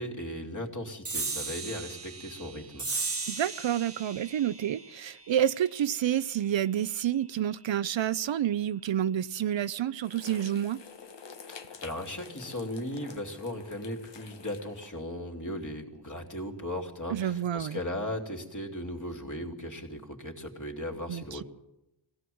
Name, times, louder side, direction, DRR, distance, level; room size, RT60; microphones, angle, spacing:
voice 1, 0.0-2.9 11.8-21.4, left 1 dB, 40° left, 3 dB, 2.9 m, -37 dB
sound 1, 1.0-7.9, right 4 dB, 30° right, 1.4 m, -38 dB
voice 2, 3.3-10.8 17.1-17.8 21.1-21.4, right 10 dB, 70° right, 16 dB, 0.6 m, -29 dB
sound 2, 10.0-15.0, left 6 dB, 65° left, 1.4 m, -48 dB
21.0 x 16.0 x 7.8 m, 0.91 s
wide cardioid pair, 90°, 46 cm